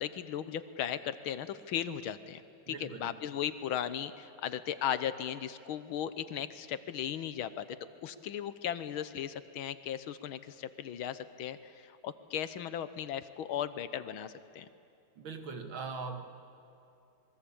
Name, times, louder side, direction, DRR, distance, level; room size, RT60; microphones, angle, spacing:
voice 1, 0.0-2.4 2.7-7.6 8.0-14.7, left 9 dB, 75° left, 13 dB, 1.7 m, -37 dB
voice 2, 2.7-3.2 15.2-16.4, right 4 dB, 65° right, 6 dB, 2.5 m, -41 dB
26.5 x 21.5 x 8.6 m, 2.7 s
omnidirectional pair, 2.4 m